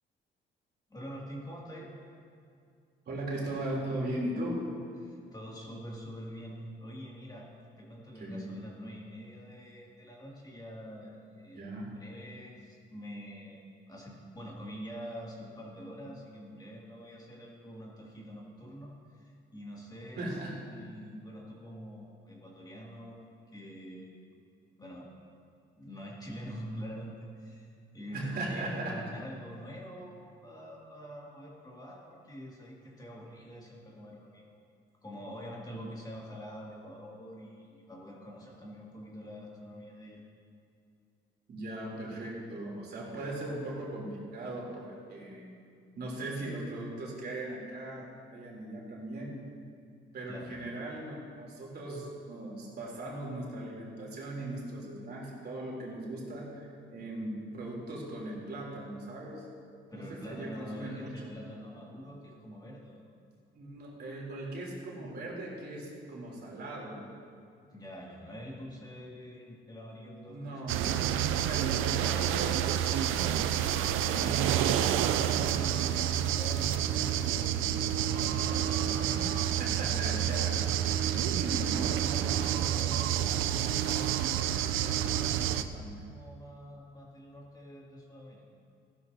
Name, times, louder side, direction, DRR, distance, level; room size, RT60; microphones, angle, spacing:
voice 1, 0.9-1.9 5.0-7.5 7.8-11.7 11.9-20.4 20.6-24.1 24.8-25.1 25.8-27.7 27.9-34.6 35.0-40.2 50.3-50.5 59.9-63.1 67.7-70.7 74.2-75.2 75.5-79.1 79.9-88.4, equal, 20° left, -4 dB, 2.3 m, -46 dB
voice 2, 3.0-4.6 8.1-8.6 11.5-12.0 20.2-20.6 28.1-29.0 35.7-35.8 41.5-45.5 46.0-49.4 50.1-59.5 59.9-61.3 63.5-67.1 70.3-70.9 71.5-73.4 79.1-79.3 79.6-80.5 81.3-81.7 85.5-85.9, right 1 dB, 55° right, -3 dB, 3.2 m, -39 dB
sound 1, 70.7-85.6, right 10 dB, 90° right, 0.5 m, -29 dB
15.0 x 11.5 x 2.7 m, 2.4 s
cardioid pair, 90°, 20 cm